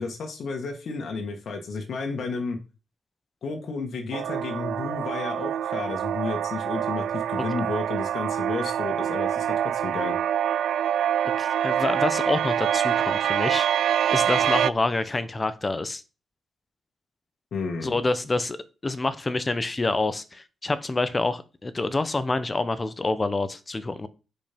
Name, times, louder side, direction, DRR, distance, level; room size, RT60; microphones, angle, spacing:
voice 1, 0.0-2.6 3.4-9.5 9.7-10.2 17.5-18.1, left 4 dB, 65° left, 2 dB, 1.8 m, -32 dB
sound 1, 4.1-14.7, right 10 dB, 80° right, 0.4 m, -25 dB
voice 2, 11.4-13.7 14.1-16.0 17.8-18.6 18.8-24.1, left 2 dB, 25° left, 13 dB, 1.1 m, -27 dB
10.5 x 5.5 x 5.4 m, 0.33 s
cardioid pair, 105°, 0 cm